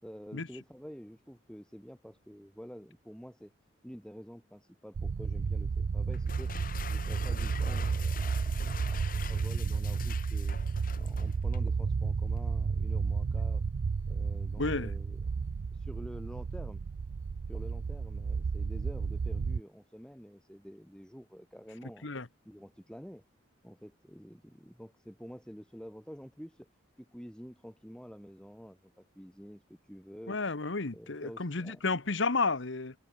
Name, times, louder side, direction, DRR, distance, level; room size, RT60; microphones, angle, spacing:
voice 1, 0.0-3.5 3.8-6.6 6.9-10.6 11.0-13.6 14.1-15.2 15.7-16.8 17.5-22.1 22.4-23.2 23.6-26.7 27.0-30.4 30.9-31.8, equal, 5° left, 4.7 m, -48 dB
sound 1, 4.9-19.6, right 5 dB, 70° right, 0.4 m, -32 dB
sound 2, 6.1-11.7, left 6 dB, 45° left, 3.7 m, -45 dB
voice 2, 14.6-14.9 22.0-22.3 30.3-32.9, left 3 dB, 65° left, 1.2 m, -32 dB
head